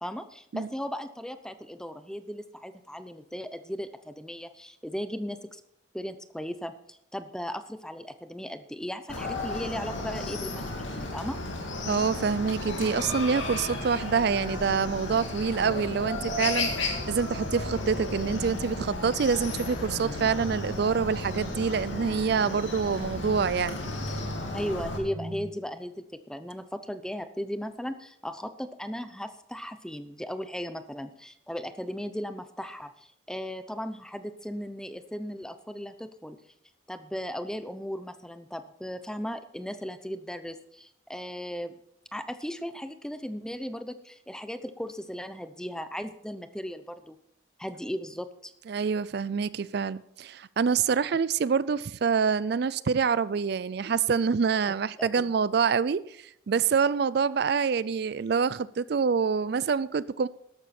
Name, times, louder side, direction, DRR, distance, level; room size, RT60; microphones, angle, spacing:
voice 1, 0.0-5.6 5.9-11.4 24.5-36.4 36.9-41.7 42.1-47.2 47.6-48.5 55.0-55.3, equal, 5° left, 0.7 m, -37 dB
Chicken rooster, 9.1-25.0, left 2 dB, 85° left, 2.7 m, -34 dB
voice 2, 11.8-23.8 48.7-60.3, right 6 dB, 60° right, 0.4 m, -26 dB
sound 1, 17.4-25.5, equal, 40° right, 2.1 m, -41 dB
13.0 x 12.0 x 4.3 m
head